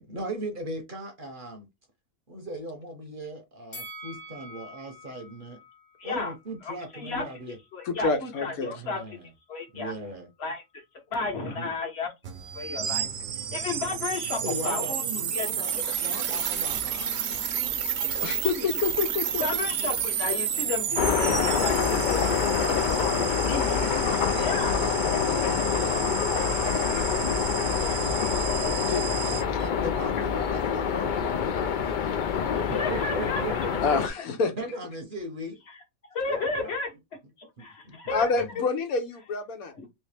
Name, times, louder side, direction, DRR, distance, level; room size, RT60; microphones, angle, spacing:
voice 1, 0.0-1.7 2.3-5.6 6.0-7.6 8.7-9.3 9.7-10.3 11.4-11.7 12.7-13.1 14.4-17.2 21.7-25.3 29.2-31.9 32.4-34.0 34.6-35.6 36.2-36.8 37.6-38.0 38.4-38.5, right 1 dB, 45° right, 0.8 m, -38 dB
Bell, 3.7-6.9 7.3-7.4, left 1 dB, 35° left, 0.8 m, -46 dB
voice 2, 6.0-6.3 6.6-7.3 7.7-9.0 9.5-9.9 10.4-10.8 11.1-12.1 12.5-13.1 13.5-15.0 15.3-15.5 18.2-18.3 18.5-18.7 19.4-22.6 23.5-23.8 24.0-24.8 27.5-28.0 32.5-34.0 36.1-36.9 37.4-38.2 38.5-38.6 39.7-39.9, left 4 dB, 50° left, 1.2 m, -33 dB
voice 3, 7.8-8.7 18.2-19.4 25.2-25.8 28.9-29.1 33.8-34.5 38.1-39.7, left 4 dB, 90° left, 1.3 m, -28 dB
sound 1, 12.2-29.4, right 8 dB, 70° right, 1.0 m, -31 dB
sound 2, 21.0-34.1, left 7 dB, 70° left, 0.4 m, -26 dB
3.2 x 3.0 x 3.3 m
omnidirectional pair, 1.4 m